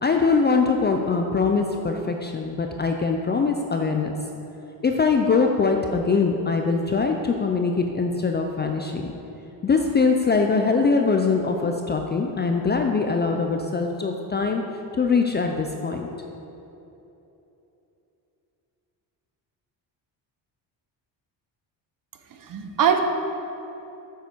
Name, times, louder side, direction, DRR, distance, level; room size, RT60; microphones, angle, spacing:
voice 1, 0.0-4.1 4.8-9.1 9.6-14.6 15.0-16.2, left 4 dB, 25° left, 3 dB, 0.4 m, -22 dB
voice 2, 22.3-23.0, right 8 dB, 45° right, 5 dB, 0.9 m, -22 dB
9.1 x 7.0 x 4.5 m, 3.0 s
cardioid pair, 145°, 45 cm